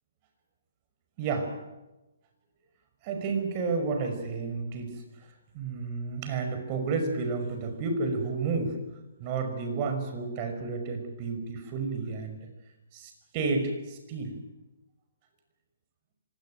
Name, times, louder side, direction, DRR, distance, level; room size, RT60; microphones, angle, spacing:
voice 1, 1.2-1.5 3.0-5.0 5.5-8.7 9.2-12.5 12.9-14.3, right 4 dB, 35° right, 6 dB, 5.7 m, -31 dB
24.5 x 17.5 x 9.3 m, 1.1 s
hypercardioid pair, 145°, 0 cm